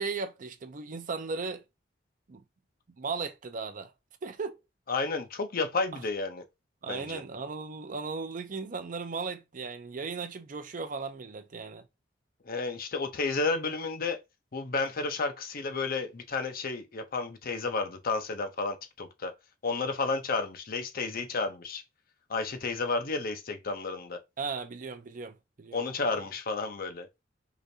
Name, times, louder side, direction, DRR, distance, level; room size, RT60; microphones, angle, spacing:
voice 1, 0.0-1.6 2.3-2.4 3.0-3.9 4.2-4.6 6.8-11.9 24.4-25.8, right 4 dB, 45° right, 0.5 m, -36 dB
voice 2, 4.9-6.4 6.9-7.2 12.4-14.2 14.5-19.3 19.6-21.8 22.3-24.2 25.7-27.1, left 3 dB, 50° left, 0.7 m, -31 dB
4.8 x 2.6 x 2.7 m
head